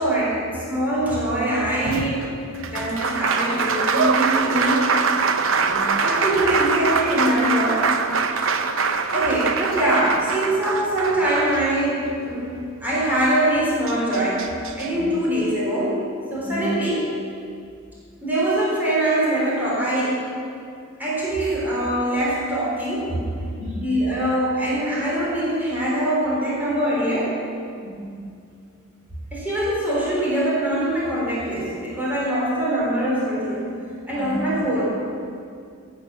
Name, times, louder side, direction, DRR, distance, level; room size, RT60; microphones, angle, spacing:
voice 1, 0.0-2.3 2.7-4.9 6.0-7.9 9.1-16.0 16.3-17.2 18.2-20.3 21.0-23.3 23.8-27.4 29.3-33.7 34.1-35.0, right 1 dB, 10° right, -7 dB, 4.1 m, -23 dB
Applause, 1.8-12.1 13.5-13.6 13.9-14.9, right 5 dB, 65° right, 0.8 m, -23 dB
voice 2, 5.6-5.9 14.9-15.1 16.4-16.7 23.5-23.8 27.8-28.1 34.2-34.5, equal, 40° right, -7 dB, 3.5 m, -33 dB
15.5 x 8.9 x 7.1 m, 2.3 s
head